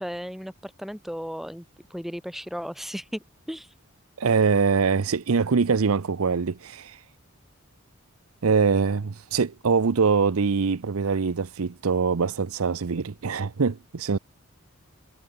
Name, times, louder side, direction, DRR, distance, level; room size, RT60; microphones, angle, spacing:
voice 1, 0.0-1.6 1.9-3.7, equal, ahead, 4.3 m, -35 dB
voice 2, 4.2-7.0 8.4-14.2, right 5 dB, 90° right, 0.6 m, -23 dB
head